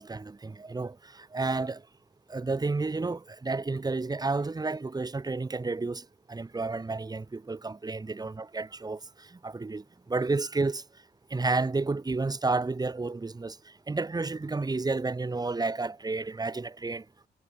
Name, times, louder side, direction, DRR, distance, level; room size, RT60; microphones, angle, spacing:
voice 1, 0.0-1.8 2.3-10.8 11.3-13.6 13.9-17.0, right 3 dB, 20° right, 1.6 m, -31 dB
cardioid pair, 90°, 20 cm